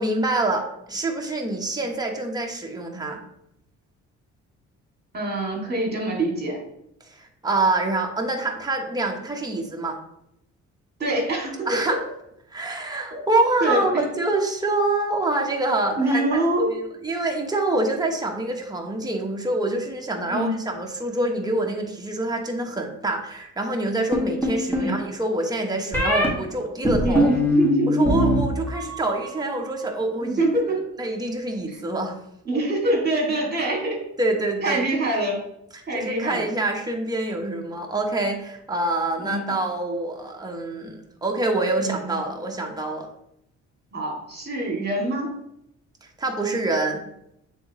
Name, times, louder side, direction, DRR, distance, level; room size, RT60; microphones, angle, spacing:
voice 1, 0.0-3.2 7.2-10.0 11.7-12.0 12.5-16.4 16.7-27.3 27.9-30.4 31.0-32.1 34.2-34.8 35.7-43.1 46.2-47.1, right 2 dB, 15° right, 1 dB, 1.1 m, -26 dB
voice 2, 5.1-6.6 11.0-12.0 13.1-13.2 13.6-14.0 16.0-16.7 20.3-20.6 24.8-25.0 27.0-28.1 30.2-30.8 31.7-31.8 32.5-34.0 34.6-35.4 35.9-36.5 39.2-39.5 41.8-42.1 43.9-45.4, right 1 dB, 35° right, -1 dB, 2.5 m, -25 dB
sound 1, 24.1-24.9 25.9-26.3 26.9-28.4 28.7-29.3, left 1 dB, 5° left, 1.9 m, -21 dB
8.3 x 3.7 x 3.1 m, 0.78 s
cardioid pair, 90°, 30 cm